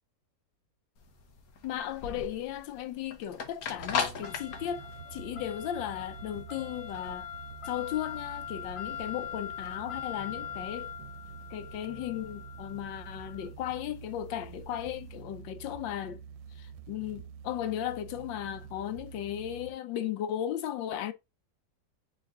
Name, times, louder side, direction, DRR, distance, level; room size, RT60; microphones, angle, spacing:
sound 1, 1.0-15.1, left 7 dB, 60° left, 1.2 m, -40 dB
voice 1, 1.6-7.3 7.6-10.9 11.5-16.2 16.5-21.1, left 11 dB, 90° left, 1.4 m, -36 dB
sound 2, 3.8-19.7, right 7 dB, 85° right, 1.3 m, -47 dB
4.0 x 3.8 x 3.4 m
omnidirectional pair, 2.0 m